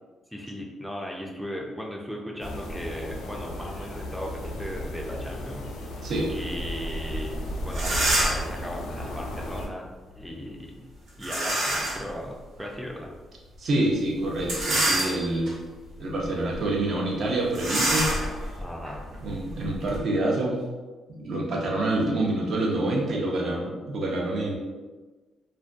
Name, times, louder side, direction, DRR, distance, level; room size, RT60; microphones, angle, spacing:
voice 1, 0.3-5.7 6.0-9.9 10.2-10.8 11.2-13.1 18.6-19.0, equal, ahead, -1 dB, 0.4 m, -37 dB
sound 1, 2.4-9.7, left 1 dB, 75° left, 0.4 m, -34 dB
sound 2, 7.3-7.4 7.7-8.5 11.2-12.1 12.6-12.7 14.4-15.5 16.1-16.3 16.5-16.7 17.5-20.0, right 1 dB, 80° right, 0.9 m, -27 dB
voice 2, 13.6-15.5 16.0-18.1 19.2-20.6 21.1-24.6, right 1 dB, 60° right, -2 dB, 0.5 m, -27 dB
2.4 x 2.2 x 2.4 m, 1.3 s
cardioid pair, 90°, 0 cm